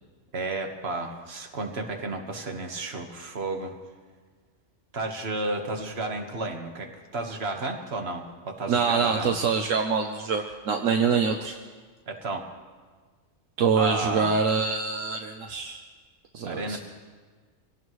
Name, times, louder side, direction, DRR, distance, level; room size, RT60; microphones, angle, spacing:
voice 1, 0.3-3.8 4.9-9.3 12.1-12.5 13.7-14.3 16.4-16.8, right 2 dB, 50° right, 3 dB, 1.7 m, -32 dB
voice 2, 8.7-11.6 13.6-15.8 16.3-16.8, right 5 dB, 75° right, 4 dB, 1.2 m, -25 dB
25.0 x 17.5 x 3.1 m, 1.5 s
omnidirectional pair, 1.4 m